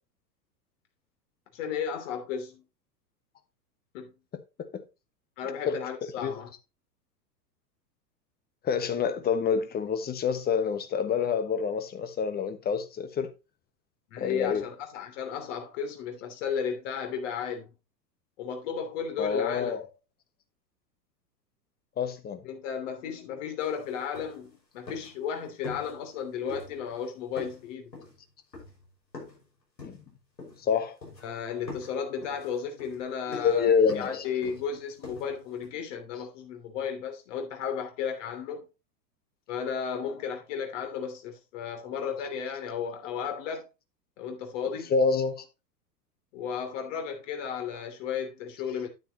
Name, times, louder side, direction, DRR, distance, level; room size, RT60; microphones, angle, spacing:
voice 1, 1.5-2.6 3.9-4.1 5.4-6.5 14.1-17.7 18.4-19.7 22.4-27.9 31.2-33.7 33.9-38.6 39.5-43.7 44.2-44.9 46.3-48.9, left 7 dB, 45° left, 3.1 m, -34 dB
voice 2, 5.7-6.3 8.6-13.3 14.2-14.6 19.2-19.9 22.0-22.4 29.8-30.0 30.6-31.0 33.4-34.3 44.9-45.4, left 6 dB, 20° left, 1.2 m, -27 dB
sound 1, 23.6-23.7 24.0-24.6 24.9-25.3 25.6-26.2 26.5-27.1 27.4-29.5 29.8-30.7 31.0-31.4 31.7-35.7, left 3 dB, 80° left, 5.8 m, -44 dB
10.0 x 9.3 x 3.0 m
figure-of-eight pair, 100°, 50 cm